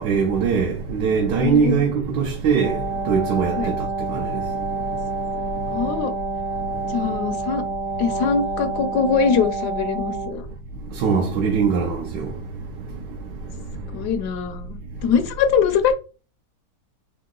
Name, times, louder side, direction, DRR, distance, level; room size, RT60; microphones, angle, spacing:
voice 1, 0.0-6.0 6.7-7.0 10.9-12.4 12.9-14.1, right 6 dB, 75° right, 1.3 m, -23 dB
voice 2, 1.4-2.0 3.6-3.7 5.7-6.1 6.9-7.6 8.0-10.5 13.9-15.9, left 6 dB, 75° left, 1.1 m, -22 dB
Wind instrument woodwind instrument, 2.5-10.5, right 3 dB, 55° right, 1.2 m, -28 dB
3.8 x 3.0 x 3.6 m
omnidirectional pair, 1.9 m